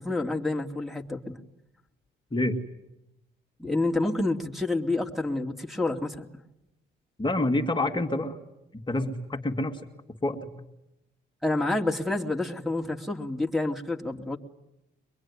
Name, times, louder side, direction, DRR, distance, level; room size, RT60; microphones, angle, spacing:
voice 1, 0.0-1.4 3.6-6.3 11.4-14.4, left 2 dB, ahead, -1 dB, 2.5 m, -28 dB
voice 2, 7.2-8.4 8.7-9.8 10.2-10.7, left 2 dB, 25° left, 2 dB, 2.0 m, -27 dB
24.0 x 22.0 x 9.8 m, 0.88 s
cardioid pair, 90°, 20 cm